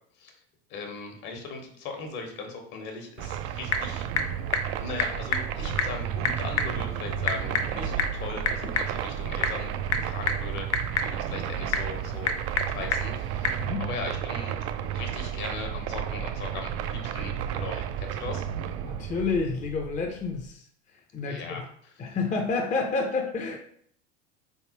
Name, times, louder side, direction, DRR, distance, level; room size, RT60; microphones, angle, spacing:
voice 1, 0.7-4.1 4.8-9.7 10.0-12.4 12.7-14.6 14.9-18.5 21.3-21.9, left 3 dB, 55° left, 3 dB, 1.2 m, -38 dB
Typing / Telephone, 3.1-13.7, left 5 dB, 85° left, 0.6 m, -32 dB
sound 1, 3.2-20.5, right 9 dB, 45° right, 0.4 m, -32 dB
voice 2, 18.8-20.6 20.9-21.6 22.0-23.6, left 4 dB, 20° left, 2 dB, 0.6 m, -29 dB
4.0 x 3.4 x 2.9 m, 0.62 s
hypercardioid pair, 80°, 34 cm